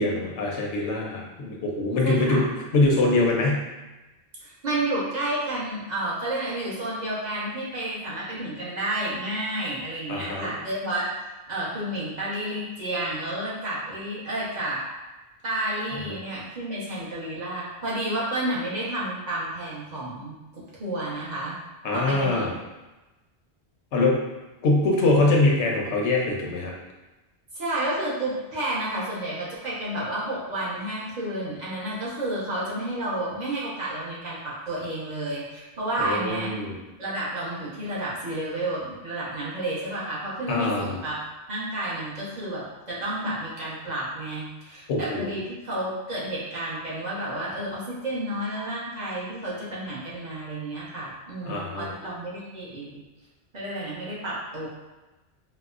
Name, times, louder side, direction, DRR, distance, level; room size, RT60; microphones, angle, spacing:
voice 1, 0.0-3.7 10.1-10.5 21.8-22.5 23.9-24.2 24.6-26.7 36.0-36.8 40.5-41.0 44.9-45.3 51.5-51.9, left 2 dB, 85° left, -1 dB, 1.0 m, -23 dB
voice 2, 2.0-2.4 4.4-11.1 11.5-14.8 15.4-21.6 21.9-22.6 27.5-36.6 37.0-41.2 41.5-53.0 53.5-54.7, right 1 dB, 40° right, -7 dB, 1.0 m, -31 dB
4.6 x 2.1 x 2.4 m, 1.1 s
omnidirectional pair, 1.1 m